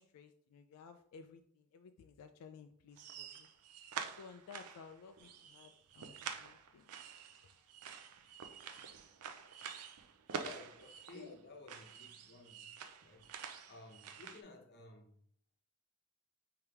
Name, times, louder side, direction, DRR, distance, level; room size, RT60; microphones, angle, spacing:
voice 1, 0.0-3.5 4.1-6.9 11.1-11.4 12.8-13.0, left 6 dB, 85° left, 0.3 m, -56 dB
sound 1, 3.0-11.4 11.7-14.4, right 7 dB, 80° right, 0.5 m, -48 dB
voice 2, 10.3-12.7 13.0-13.3 13.7-15.1, left 2 dB, 50° left, 0.7 m, -55 dB
3.4 x 2.8 x 4.5 m
head